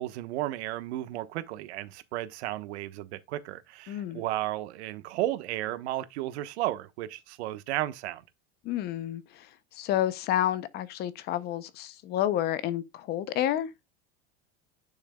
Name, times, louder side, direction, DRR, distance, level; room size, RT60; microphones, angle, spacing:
voice 1, 0.0-8.2, right 15 dB, 80° right, 1.3 m, -33 dB
voice 2, 3.9-4.2 8.6-13.7, left 12 dB, 30° left, 0.7 m, -30 dB
10.5 x 6.3 x 2.3 m
supercardioid pair, 170°, 33 cm